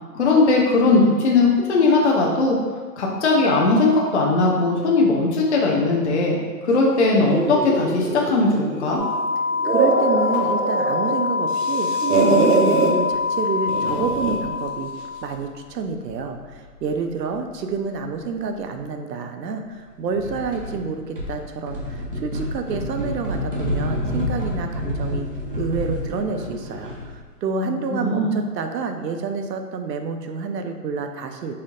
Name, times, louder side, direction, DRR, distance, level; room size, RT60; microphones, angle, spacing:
voice 1, 0.1-2.6 3.0-6.4 6.6-9.0 27.9-28.3, left 3 dB, 45° left, -2 dB, 0.5 m, -18 dB
sound 1, 7.3-9.0 9.5-11.1 11.5-12.9 13.7-14.5, right 3 dB, 70° right, 1.1 m, -22 dB
sound 2, 9.0-15.3, left 4 dB, 20° left, 0.9 m, -25 dB
voice 2, 9.6-25.3 25.6-31.5, right 4 dB, 85° right, 6 dB, 0.7 m, -28 dB
sound 3, 20.1-20.8 21.1-27.2, left 1 dB, 35° right, 0.5 m, -28 dB
4.3 x 2.7 x 3.7 m, 1.4 s
hypercardioid pair, 175°, 48 cm